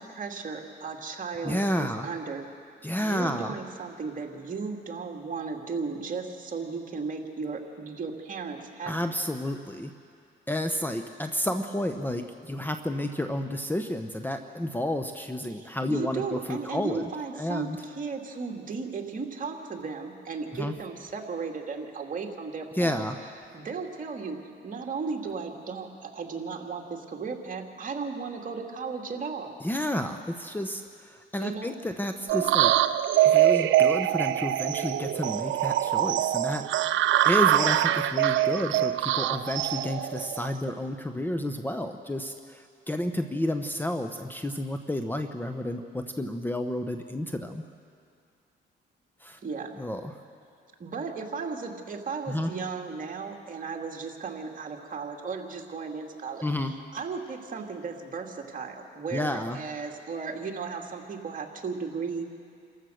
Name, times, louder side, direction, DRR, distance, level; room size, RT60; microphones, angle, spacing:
voice 1, 0.0-2.4 3.0-8.9 15.5-17.7 17.9-23.1 23.5-24.4 24.6-29.5 31.4-31.7 49.4-49.7 50.8-62.3, right 4 dB, 40° right, 2 dB, 2.5 m, -35 dB
voice 2, 1.4-2.1 2.8-3.5 8.9-9.9 10.5-17.8 20.5-20.7 22.8-23.2 29.6-32.7 33.2-47.6 49.2-49.4 49.8-50.2 52.3-52.5 56.4-56.7 59.1-59.6, left 1 dB, 10° left, 6 dB, 1.0 m, -31 dB
sound 1, 32.3-40.7, right 12 dB, 75° right, 0.7 m, -24 dB
28.5 x 15.0 x 6.5 m, 2.4 s
cardioid pair, 90°, 20 cm